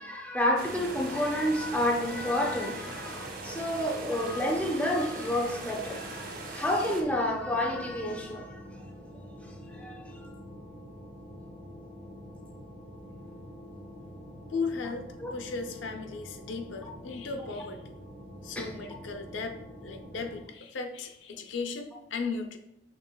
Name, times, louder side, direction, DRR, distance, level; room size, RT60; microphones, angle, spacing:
voice 1, 0.0-8.6 9.4-10.3 15.2-15.3 16.8-16.9 18.6-18.7, left 1 dB, 5° left, 1 dB, 0.4 m, -30 dB
sound 1, 0.6-7.0, right 3 dB, 50° right, 0.6 m, -41 dB
sound 2, 0.6-20.4, equal, 65° right, 1.5 m, -46 dB
voice 2, 14.5-15.1 15.3-17.9 18.4-19.6 19.8-22.6, left 4 dB, 85° left, 6 dB, 0.5 m, -36 dB
6.1 x 3.3 x 2.2 m, 0.85 s
head